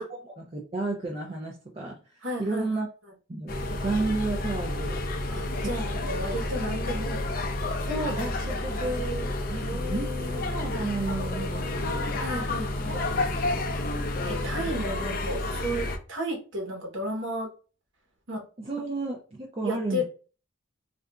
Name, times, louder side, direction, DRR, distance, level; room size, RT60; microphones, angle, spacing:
voice 1, 0.0-2.9 3.3-5.0 5.6-5.7 7.9-12.0 12.9-13.6 18.6-20.0, right 2 dB, 30° right, -2 dB, 0.5 m, -33 dB
voice 2, 2.2-2.7 5.3-7.2 9.5-10.4 12.2-13.0 14.2-17.5 18.3-18.4 19.6-20.0, equal, 75° right, 0 dB, 1.0 m, -33 dB
sound 1, 3.5-16.0, left 2 dB, 45° left, 0.5 m, -30 dB
3.9 x 2.5 x 2.3 m, 0.36 s
head